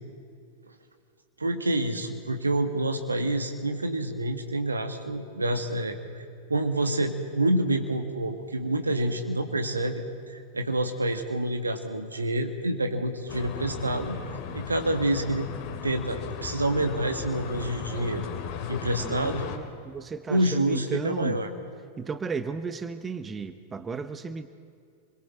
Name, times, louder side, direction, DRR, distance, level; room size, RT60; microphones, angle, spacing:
voice 1, 1.4-6.0 6.5-10.0 10.5-14.2 14.5-15.5 15.8-18.3 18.7-19.5 20.3-21.5, right 1 dB, 80° right, 5 dB, 1.7 m, -27 dB
sound 1, 13.3-19.6, left 8 dB, 45° left, 2.4 m, -36 dB
voice 2, 19.0-21.4 22.0-24.5, right 5 dB, 15° right, 11 dB, 0.9 m, -34 dB
28.5 x 22.0 x 4.4 m, 2.3 s
figure-of-eight pair, 90°, 0 cm